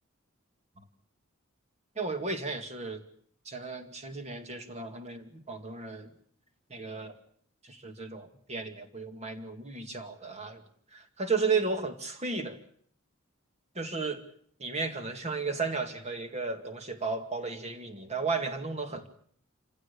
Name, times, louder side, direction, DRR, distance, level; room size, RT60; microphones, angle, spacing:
voice 1, 2.0-3.0 3.5-6.1 6.7-7.2 7.6-10.6 10.9-12.6 13.7-14.2 14.6-19.1, right 4 dB, 35° right, 7 dB, 2.3 m, -34 dB
27.0 x 16.0 x 8.4 m, 0.62 s
head